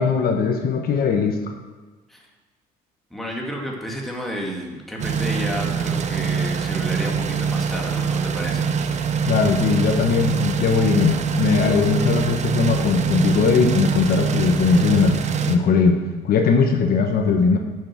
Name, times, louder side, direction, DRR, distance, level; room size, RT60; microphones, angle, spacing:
voice 1, 0.0-1.4 9.3-15.2 15.5-17.6, left 5 dB, 60° left, 4 dB, 1.2 m, -19 dB
voice 2, 3.1-8.7, equal, ahead, -2 dB, 2.2 m, -31 dB
sound 1, 5.0-15.6, right 6 dB, 45° right, 0.8 m, -24 dB
8.8 x 6.7 x 6.1 m, 1.3 s
cardioid pair, 110°, 17 cm